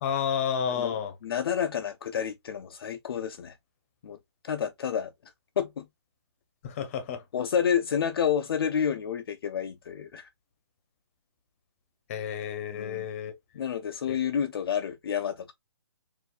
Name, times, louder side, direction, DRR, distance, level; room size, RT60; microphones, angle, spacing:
voice 1, 0.0-1.1 6.6-7.2 12.1-13.3 14.1-14.2, left 8 dB, 30° left, 0.8 m, -30 dB
voice 2, 0.7-3.6 4.0-4.2 4.4-5.9 7.3-10.3 12.7-13.1 13.5-15.5, left 8 dB, 55° left, 0.4 m, -30 dB
4.3 x 2.5 x 2.3 m
hypercardioid pair, 155°, 15 cm